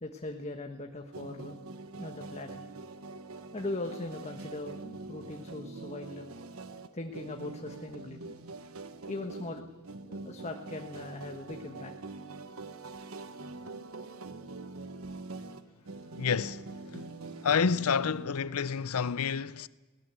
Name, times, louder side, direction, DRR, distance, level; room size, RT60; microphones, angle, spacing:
voice 1, 0.0-1.5 2.0-2.6 3.5-6.3 6.9-8.3 9.1-9.7 10.1-11.9, left 2 dB, 30° left, 1.3 m, -40 dB
sound 1, 1.1-18.6, right 3 dB, 70° right, 1.2 m, -44 dB
voice 2, 16.2-19.7, left 6 dB, 85° left, 0.6 m, -30 dB
22.0 x 18.5 x 8.1 m
head